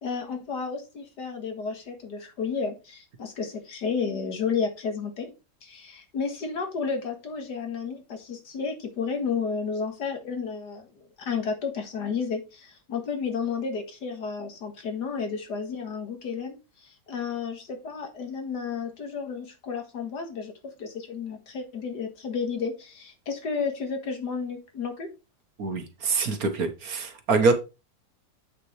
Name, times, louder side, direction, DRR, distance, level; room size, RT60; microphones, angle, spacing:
voice 1, 0.0-5.3 5.6-10.9 11.2-25.1, left 5 dB, 70° left, 2.2 m, -32 dB
voice 2, 25.6-27.5, right 4 dB, 55° right, 1.6 m, -24 dB
8.3 x 6.8 x 3.2 m
omnidirectional pair, 1.9 m